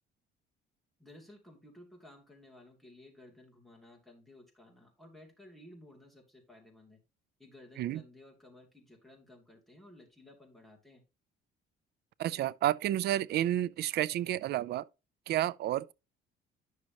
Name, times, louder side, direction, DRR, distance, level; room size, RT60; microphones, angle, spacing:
voice 1, 1.0-7.0 7.4-11.0, left 1 dB, ahead, 2.8 m, -56 dB
voice 2, 12.2-14.8 15.3-15.9, right 13 dB, 55° right, 0.4 m, -30 dB
10.0 x 6.4 x 2.9 m
cardioid pair, 130°, 20 cm